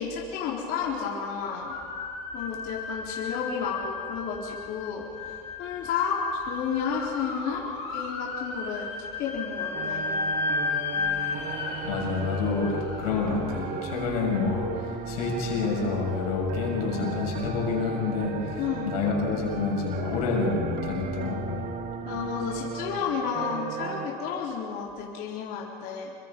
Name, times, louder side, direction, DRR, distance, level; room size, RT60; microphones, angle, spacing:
voice 1, 0.0-1.7 2.3-7.6 7.9-10.0 18.6-18.9 22.1-26.1, left 6 dB, 55° left, 4.2 m, -31 dB
sound 1, 1.6-14.6, left 4 dB, 30° left, 6.8 m, -34 dB
sound 2, 9.7-24.1, right 7 dB, 45° right, 2.0 m, -36 dB
voice 2, 11.8-21.7, left 4 dB, 90° left, 6.7 m, -28 dB
28.0 x 24.0 x 5.5 m
supercardioid pair, 125°, 19 cm